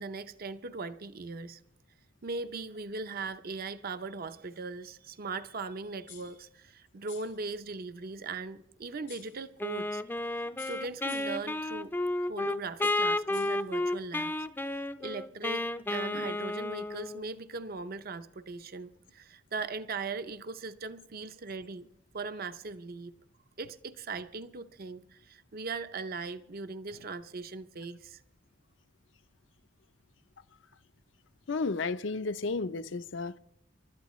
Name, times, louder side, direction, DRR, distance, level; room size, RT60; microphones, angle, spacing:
voice 1, 0.0-1.6 2.2-10.0 10.6-14.3 15.0-21.9 22.1-23.1 23.6-28.2, right 3 dB, 50° right, 0.6 m, -39 dB
sound 1, 6.1-6.4 7.1-7.4 9.1-9.4 10.6-11.5 12.8-13.7, left 12 dB, 85° left, 1.7 m, -51 dB
Wind instrument woodwind instrument, 9.6-17.3, left 2 dB, 10° left, 0.4 m, -32 dB
voice 2, 31.5-33.4, left 3 dB, 70° left, 0.6 m, -32 dB
28.5 x 12.5 x 3.1 m
head